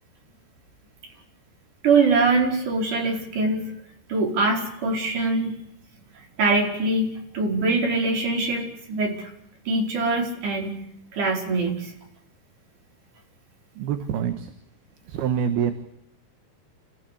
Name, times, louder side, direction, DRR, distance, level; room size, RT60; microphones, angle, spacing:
voice 1, 1.8-3.7 4.1-5.5 6.4-9.3 9.7-10.8 11.1-11.9, right 3 dB, 50° right, 1 dB, 6.2 m, -23 dB
voice 2, 13.8-14.5 15.1-15.7, right 8 dB, 70° right, 8 dB, 3.2 m, -25 dB
29.0 x 15.5 x 8.6 m, 0.76 s
omnidirectional pair, 4.8 m